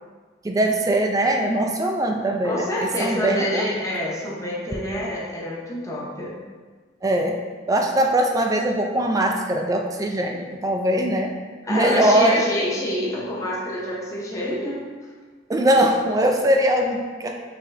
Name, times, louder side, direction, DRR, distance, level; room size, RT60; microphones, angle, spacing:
voice 1, 0.4-3.6 7.0-7.4 7.7-11.3 11.7-12.4 15.5-17.4, right 1 dB, 20° right, 3 dB, 0.3 m, -21 dB
voice 2, 2.4-6.4 11.6-14.9, left 1 dB, 15° left, -6 dB, 0.8 m, -27 dB
5.9 x 3.2 x 2.6 m, 1.4 s
head